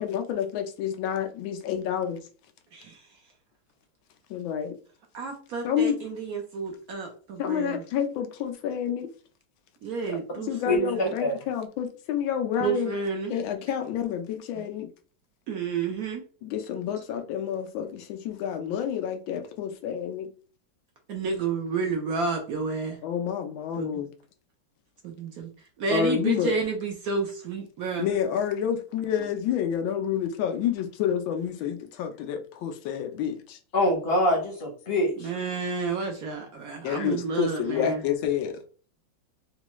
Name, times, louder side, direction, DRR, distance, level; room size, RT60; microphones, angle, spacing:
voice 1, 0.0-2.2 4.3-4.7 5.6-6.0 7.4-9.1 10.1-13.0 13.3-14.9 16.4-20.3 23.0-24.1 25.9-26.5 28.0-33.6 36.8-38.5, left 8 dB, 90° left, 1.4 m, -29 dB
voice 2, 2.7-3.0 5.1-7.8 9.8-11.1 12.6-13.3 14.5-14.6 15.5-16.2 21.1-23.0 23.8-23.9 25.0-25.5 25.8-28.1 35.2-38.0, right 5 dB, 65° right, 0.9 m, -30 dB
voice 3, 10.6-11.4 33.7-35.3, left 1 dB, 45° left, 0.8 m, -25 dB
4.2 x 2.3 x 3.0 m
omnidirectional pair, 2.1 m